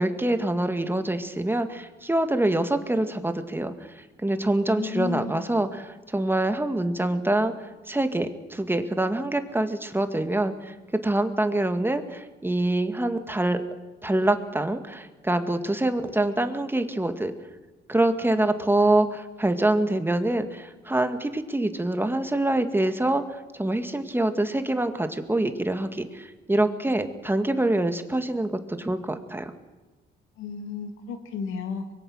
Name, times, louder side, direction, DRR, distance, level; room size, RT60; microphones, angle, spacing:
voice 1, 0.0-10.8 11.0-13.6 14.0-17.3 17.9-29.5, right 1 dB, 10° right, 8 dB, 2.1 m, -25 dB
voice 2, 4.8-5.3 30.4-31.8, left 6 dB, 85° left, 6 dB, 2.9 m, -33 dB
24.0 x 22.0 x 6.5 m, 1.3 s
cardioid pair, 90°, 20 cm